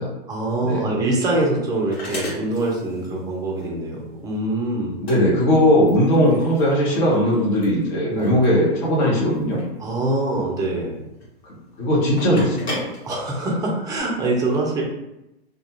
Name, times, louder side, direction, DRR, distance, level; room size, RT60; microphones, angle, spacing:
voice 1, 0.3-5.0 8.1-8.4 9.8-11.0 13.0-14.8, right 2 dB, 10° right, -2 dB, 0.5 m, -24 dB
sound 1, 0.7-14.0, left 1 dB, 75° left, 1.3 m, -38 dB
voice 2, 5.0-9.6 11.8-12.8, equal, 50° left, -4 dB, 1.0 m, -18 dB
2.3 x 2.3 x 2.9 m, 0.89 s
hypercardioid pair, 115°, 31 cm